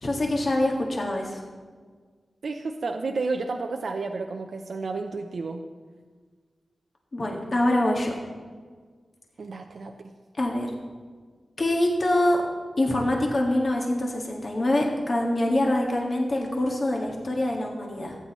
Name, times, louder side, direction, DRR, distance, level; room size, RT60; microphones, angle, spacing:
voice 1, 0.0-1.4 7.1-8.2 10.4-10.7 11.6-12.4 12.8-18.2, left 1 dB, 50° left, -1 dB, 1.7 m, -25 dB
voice 2, 2.4-5.6 9.4-9.9, right 3 dB, 70° right, 4 dB, 0.6 m, -31 dB
14.5 x 8.8 x 3.1 m, 1.5 s
cardioid pair, 60°, 0 cm